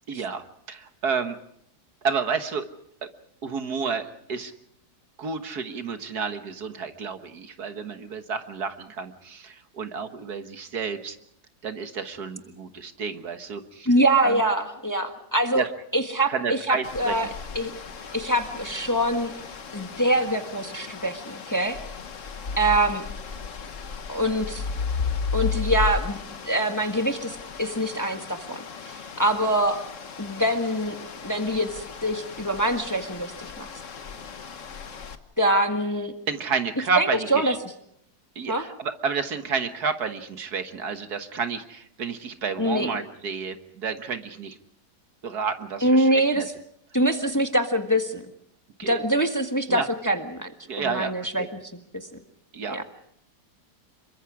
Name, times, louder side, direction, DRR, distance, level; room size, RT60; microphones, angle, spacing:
voice 1, 0.1-1.4 2.0-2.6 3.4-4.5 5.2-11.2 11.6-13.9 14.2-14.4 15.6-15.7 16.3-17.2 36.3-37.6 38.4-44.6 45.2-46.5 48.8-49.0 49.7-49.9 50.7-51.1 51.4-51.5 52.5-52.8, right 5 dB, 70° right, 8 dB, 1.9 m, -30 dB
voice 2, 13.8-15.6 15.9-17.3 17.5-17.7 18.1-19.3 19.7-21.8 22.6-23.0 24.1-24.6 25.3-26.2 26.4-29.9 30.2-31.0 31.2-33.7 35.4-36.1 36.9-37.7 38.5-38.6 42.6-42.9 45.8-46.4 46.9-48.2 48.8-50.5 50.8-51.4 51.7-52.1 52.7-52.8, right 1 dB, 10° left, 5 dB, 1.4 m, -24 dB
sound 1, 16.8-35.2, left 5 dB, 50° left, 1.5 m, -35 dB
27.5 x 23.5 x 4.9 m, 0.71 s
omnidirectional pair, 1.8 m